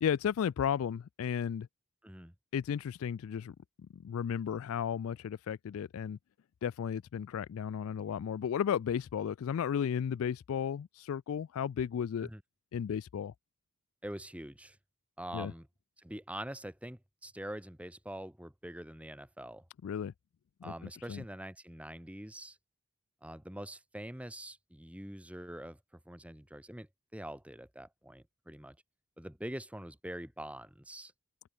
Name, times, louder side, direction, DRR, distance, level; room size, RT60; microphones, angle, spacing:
voice 1, 0.0-1.7 2.5-3.6 3.9-6.2 6.6-12.3 12.7-13.3 15.3-15.5 19.8-20.1 20.6-20.7 21.1-21.2, left 8 dB, 65° left, 0.3 m, -34 dB
voice 2, 2.0-2.3 12.2-12.4 14.0-14.8 15.2-15.7 16.0-19.6 20.6-22.6 23.2-25.8 26.1-28.8 29.2-31.1, right 1 dB, 5° right, 2.1 m, -44 dB
open air
head